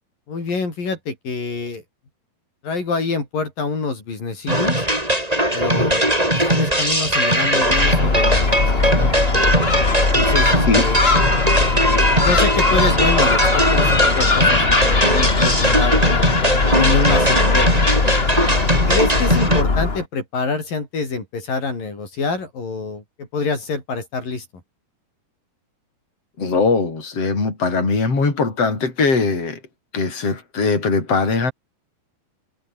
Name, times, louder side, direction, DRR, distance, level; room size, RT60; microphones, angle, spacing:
voice 1, 0.3-1.8 2.6-4.8 5.5-9.1 10.1-11.0 12.2-16.4 16.8-17.7 18.9-24.5, left 4 dB, 65° left, 8.0 m, -26 dB
sound 1, 4.5-19.6, right 1 dB, 10° right, 7.1 m, -19 dB
Gull seagull, 7.6-20.0, left 4 dB, 25° left, 1.4 m, -19 dB
voice 2, 26.4-29.6 29.9-31.5, left 4 dB, 40° left, 7.2 m, -20 dB
omnidirectional pair, 4.2 m